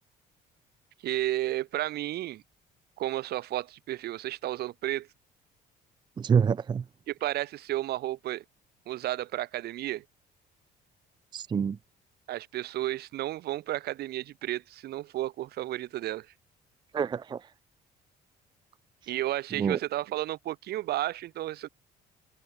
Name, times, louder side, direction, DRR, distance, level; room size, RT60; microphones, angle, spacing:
voice 1, 1.0-2.4 3.0-5.1 7.1-8.4 8.9-10.0 12.3-16.3 19.1-21.7, right 14 dB, 70° right, 1.8 m, -32 dB
voice 2, 6.2-6.9 11.3-11.8 16.9-17.5 19.5-19.8, right 6 dB, 25° right, 0.5 m, -27 dB
cardioid pair, 110°, 17 cm